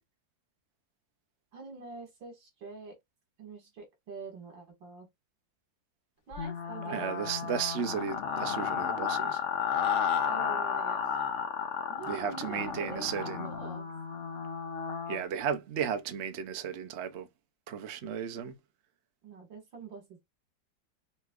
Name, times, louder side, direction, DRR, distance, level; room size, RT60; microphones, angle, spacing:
voice 1, 1.5-3.0 3.4-5.1 6.3-7.2 10.3-11.0 11.9-13.9 19.2-20.2, right 4 dB, 80° right, 2.6 m, -44 dB
sound 1, 6.3-15.2, left 7 dB, 55° left, 0.8 m, -33 dB
voice 2, 6.9-9.4 12.1-13.5 15.1-17.3 17.7-18.6, right 7 dB, 60° right, 0.7 m, -34 dB
5.6 x 3.1 x 2.4 m
omnidirectional pair, 2.0 m